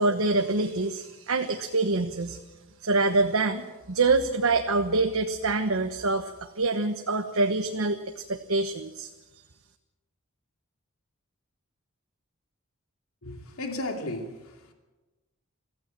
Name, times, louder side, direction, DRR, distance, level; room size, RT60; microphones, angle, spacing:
voice 1, 0.0-2.4 2.8-9.1, right 3 dB, 75° right, 1.2 m, -26 dB
voice 2, 13.2-14.7, left 1 dB, 80° left, 2.6 m, -35 dB
24.5 x 15.0 x 7.6 m
head